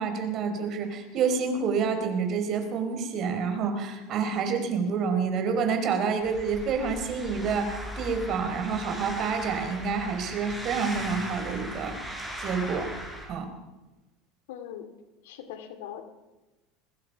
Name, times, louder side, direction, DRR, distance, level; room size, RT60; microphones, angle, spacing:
voice 1, 0.0-11.9 12.4-12.9 13.3-13.5, right 5 dB, 40° right, 6 dB, 4.4 m, -28 dB
sound 1, 6.2-13.3, equal, 5° right, 7.3 m, -38 dB
voice 2, 14.5-14.9 15.2-16.0, left 10 dB, 90° left, 8 dB, 2.6 m, -40 dB
22.5 x 21.0 x 5.8 m, 1.1 s
supercardioid pair, 140°, 0 cm